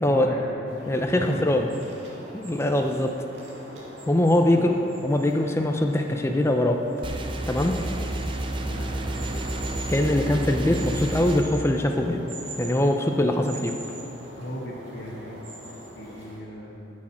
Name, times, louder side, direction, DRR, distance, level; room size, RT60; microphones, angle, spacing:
voice 1, 0.0-0.7 1.1-1.8 4.5-4.9 8.6-8.9 14.4-15.4 15.8-16.8, equal, 65° left, -6 dB, 1.3 m, -36 dB
sound 1, 0.7-16.4, equal, 70° right, 2.2 m, -42 dB
voice 2, 0.9-1.7 2.3-3.2 4.1-4.7 5.0-6.8 7.5-7.7 9.9-12.2 12.6-13.7, left 1 dB, 15° left, 4 dB, 0.5 m, -22 dB
sound 2, 7.0-11.4, right 1 dB, 30° right, 0.6 m, -30 dB
13.0 x 6.4 x 5.9 m, 3.0 s
head